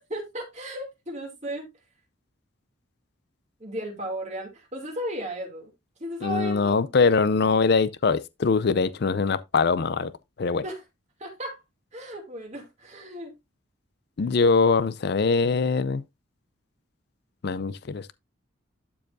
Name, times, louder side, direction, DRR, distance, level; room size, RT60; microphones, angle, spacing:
voice 1, 0.0-1.7 3.6-5.7 6.0-6.8 10.6-10.8 11.2-11.6 11.9-13.3, equal, 35° right, 2.6 m, -35 dB
voice 2, 6.2-10.1 10.4-10.6 14.2-16.0 17.4-18.1, left 4 dB, 50° left, 0.4 m, -22 dB
12.0 x 4.6 x 2.6 m
head